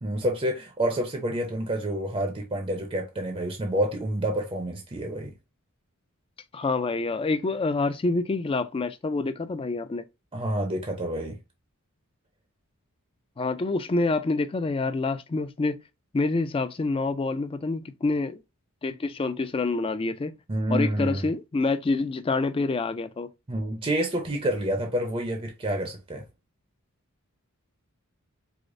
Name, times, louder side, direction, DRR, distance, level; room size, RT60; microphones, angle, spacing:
voice 1, 0.0-5.3 10.3-11.4 20.5-21.3 23.5-26.3, right 1 dB, 25° right, 0.6 m, -28 dB
voice 2, 6.5-10.0 13.4-15.8 16.1-18.4 18.8-20.3 20.7-23.3, left 3 dB, 25° left, 0.3 m, -27 dB
4.8 x 2.0 x 2.5 m
head